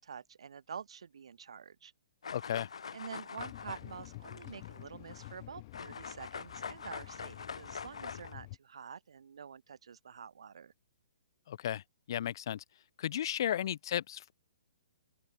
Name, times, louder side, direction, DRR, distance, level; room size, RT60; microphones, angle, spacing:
voice 1, 0.0-1.9 2.9-10.7 13.4-13.6, right 7 dB, 75° right, 3.8 m, -48 dB
sound 1, 2.2-5.4 5.7-8.3, left 6 dB, 85° left, 2.1 m, -45 dB
voice 2, 2.3-2.7 11.5-11.8 12.1-12.6 13.0-14.3, left 11 dB, 50° left, 0.7 m, -34 dB
sound 2, 3.4-8.6, left 20 dB, 30° left, 5.2 m, -50 dB
open air
hypercardioid pair, 160°, 3 cm